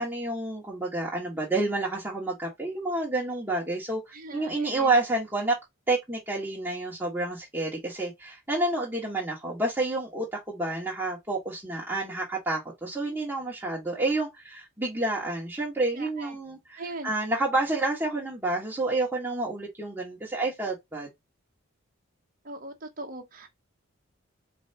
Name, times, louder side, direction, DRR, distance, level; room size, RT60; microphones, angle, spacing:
voice 1, 0.0-5.5 5.9-21.1, right 2 dB, 10° right, 1.3 m, -29 dB
voice 2, 4.1-5.0 15.9-16.4 16.7-17.1 22.4-23.5, right 2 dB, 40° right, 1.0 m, -40 dB
4.6 x 3.3 x 2.8 m
head